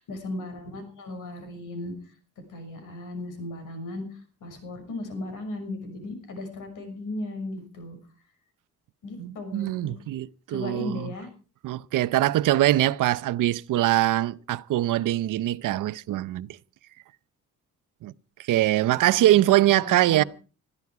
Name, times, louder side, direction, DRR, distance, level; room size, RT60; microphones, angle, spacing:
voice 1, 0.0-1.9 2.5-8.0 9.0-9.9 10.5-11.3 19.2-20.2, left 2 dB, 90° left, 6.3 m, -36 dB
voice 2, 9.2-11.1 11.6-16.6 18.0-18.1 18.4-20.2, right 14 dB, 90° right, 0.7 m, -23 dB
20.5 x 14.0 x 4.8 m
cardioid pair, 155°, 31 cm